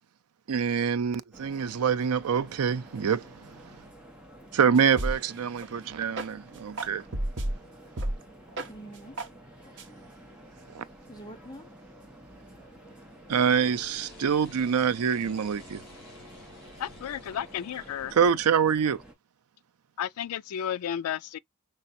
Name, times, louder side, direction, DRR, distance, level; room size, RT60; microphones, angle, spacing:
voice 1, 0.5-3.3 4.5-7.0 10.7-10.8 13.3-15.8 18.1-19.0, right 7 dB, 80° right, 0.5 m, -25 dB
sound 1, 1.3-19.1, right 1 dB, 5° right, 1.2 m, -51 dB
sound 2, 4.8-5.3 5.6-5.7 6.1-6.3 6.8-7.5 8.0-8.1 8.5-8.7 9.2-9.3 9.8-9.9, right 1 dB, 55° right, 0.9 m, -30 dB
voice 2, 8.6-9.3 9.6-11.7 12.3-13.1 13.9-14.0 15.0-15.1, right 1 dB, 20° left, 0.8 m, -50 dB
sound 3, 13.3-18.3, left 2 dB, 45° left, 3.3 m, -50 dB
voice 3, 16.8-18.1 20.0-21.4, left 9 dB, 80° left, 0.3 m, -33 dB
5.4 x 3.3 x 2.6 m
head